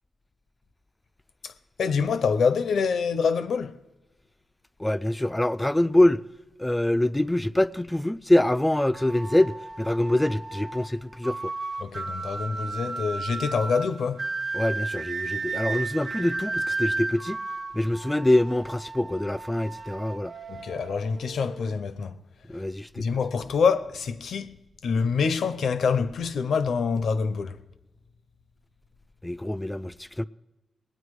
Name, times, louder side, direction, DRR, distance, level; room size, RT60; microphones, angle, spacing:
voice 1, 1.8-3.7 11.8-14.2 20.5-22.2 23.0-27.6, left 5 dB, 85° left, 0.7 m, -26 dB
voice 2, 4.8-6.2 6.6-11.5 14.5-17.4 17.7-20.3 22.5-23.1 29.2-30.2, left 1 dB, 10° left, 0.3 m, -24 dB
sound 1, 8.9-21.7, right 3 dB, 45° right, 0.9 m, -34 dB
20.0 x 9.2 x 4.8 m
cardioid pair, 80°, 0 cm